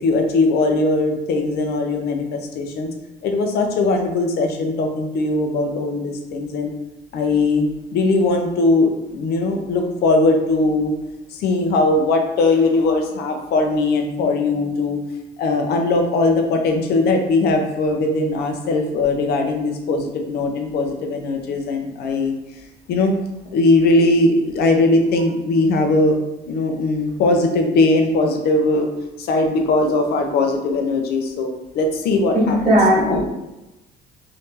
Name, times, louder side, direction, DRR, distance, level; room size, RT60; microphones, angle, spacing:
voice 1, 0.0-2.9 3.2-6.7 7.1-10.9 11.3-15.0 15.4-22.3 22.9-23.1 23.5-26.2 26.5-28.9 29.2-33.2, left 2 dB, 70° left, 4 dB, 0.6 m, -19 dB
voice 2, 32.3-33.2, equal, 55° right, -3 dB, 1.2 m, -16 dB
3.6 x 2.7 x 2.7 m, 0.97 s
cardioid pair, 110°, 17 cm